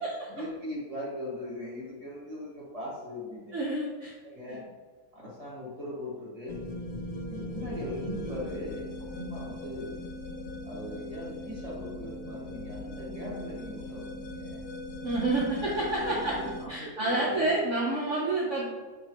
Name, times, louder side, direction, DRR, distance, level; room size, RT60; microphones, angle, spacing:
voice 1, 0.3-3.6 4.2-4.7 5.1-6.6 7.3-10.1 10.6-14.7 15.9-17.5, left 1 dB, 25° right, -5 dB, 1.9 m, -40 dB
voice 2, 3.5-4.1 15.0-16.4 16.7-18.6, right 2 dB, 55° right, -5 dB, 1.2 m, -28 dB
sound 1, 6.5-16.7, left 1 dB, 75° left, 1.3 m, -39 dB
6.6 x 4.8 x 3.0 m, 1.4 s
omnidirectional pair, 1.6 m